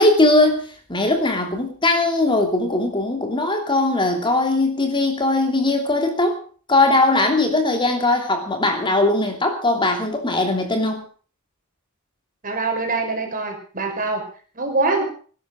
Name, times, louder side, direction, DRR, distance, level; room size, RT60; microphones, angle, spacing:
voice 1, 0.0-6.4 6.7-11.0, left 2 dB, 20° left, 4 dB, 2.9 m, -19 dB
voice 2, 12.4-14.3 14.6-15.0, right 3 dB, 40° right, 4 dB, 5.3 m, -23 dB
20.0 x 11.0 x 6.3 m, 0.42 s
head